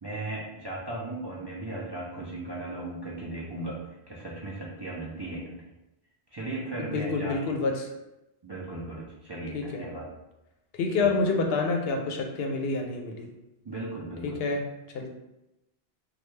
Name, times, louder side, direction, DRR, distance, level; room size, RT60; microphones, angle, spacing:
voice 1, 0.0-5.5 6.3-7.4 8.4-10.1 11.0-11.1 13.6-14.4, right 2 dB, 35° right, -6 dB, 0.4 m, -37 dB
voice 2, 6.9-7.9 9.5-9.9 10.7-13.3 14.2-14.6 14.9-15.1, left 3 dB, 75° left, 2 dB, 0.8 m, -28 dB
3.2 x 2.2 x 3.1 m, 0.93 s
omnidirectional pair, 1.0 m